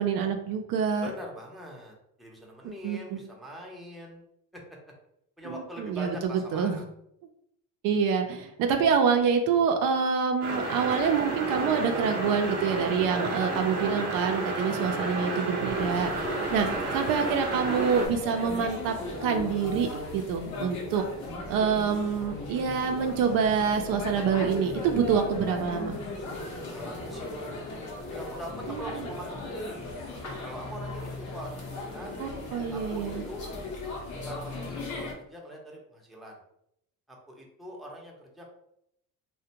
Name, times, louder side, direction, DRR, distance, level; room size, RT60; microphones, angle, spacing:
voice 1, 0.0-1.1 2.6-3.3 5.4-6.8 7.8-16.2 16.5-18.9 19.2-19.9 20.1-21.0 21.5-26.0 28.7-29.0 32.2-33.2, right 6 dB, 65° right, 5 dB, 0.5 m, -26 dB
voice 2, 1.0-4.2 4.5-4.6 5.4-6.8 26.6-27.3 28.1-29.7 30.4-32.1 32.7-33.5 34.1-36.4 37.1-38.4, equal, ahead, -2 dB, 0.6 m, -43 dB
sound 1, 10.4-18.1, right 2 dB, 45° right, 0.9 m, -31 dB
sound 2, 15.7-35.1, left 2 dB, 55° left, 0.8 m, -37 dB
2.4 x 2.1 x 2.8 m, 0.75 s
supercardioid pair, 85°, 36 cm